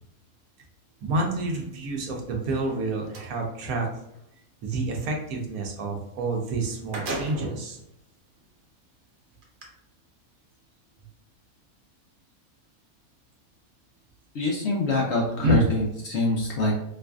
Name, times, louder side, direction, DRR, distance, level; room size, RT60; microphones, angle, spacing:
voice 1, 1.0-3.9 4.6-7.8 15.4-15.6, right 2 dB, 70° right, 1 dB, 1.1 m, -28 dB
sound 1, 2.4-3.3 6.2-6.3 6.6-7.7 8.4-8.5 9.4-9.6, right 2 dB, 50° right, 0.6 m, -36 dB
voice 2, 14.3-16.7, left 2 dB, 60° left, -1 dB, 0.8 m, -25 dB
4.6 x 2.4 x 2.3 m, 0.81 s
omnidirectional pair, 1.6 m